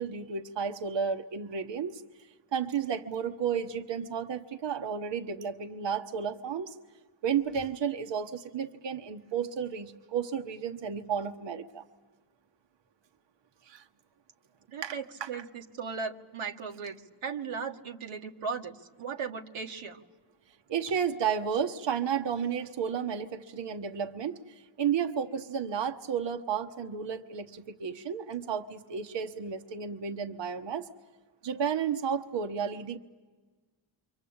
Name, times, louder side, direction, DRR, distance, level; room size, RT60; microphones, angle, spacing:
voice 1, 0.0-2.0 2.5-6.7 7.2-11.8 13.7-13.9 14.8-15.4 20.7-30.9 31.4-33.0, right 7 dB, 60° right, 6 dB, 1.2 m, -32 dB
voice 2, 14.7-20.0, right 5 dB, 90° right, 3 dB, 1.6 m, -37 dB
28.0 x 24.5 x 8.7 m, 1.3 s
cardioid pair, 75°, 49 cm